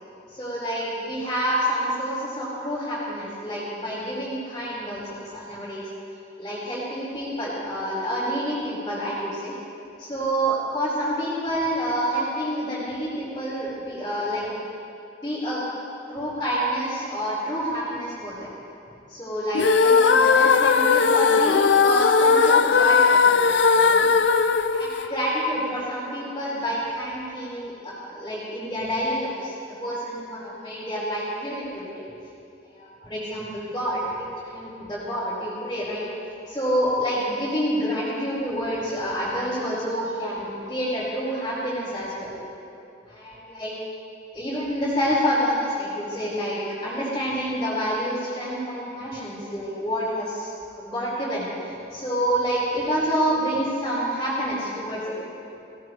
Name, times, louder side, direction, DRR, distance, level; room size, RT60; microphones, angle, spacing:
voice 1, 0.3-5.0 5.3-5.8 6.4-9.5 10.0-14.5 15.2-15.6 16.1-18.5 19.1-23.4 23.7-24.1 24.7-29.5 29.8-32.0 32.7-36.0 36.5-42.3 43.1-43.7 44.3-51.5 51.9-55.0, equal, 20° left, -12 dB, 4.6 m, -28 dB
sound 1, 19.5-25.7, left 5 dB, 65° left, 0.5 m, -18 dB
20.5 x 17.5 x 3.3 m, 2.7 s
head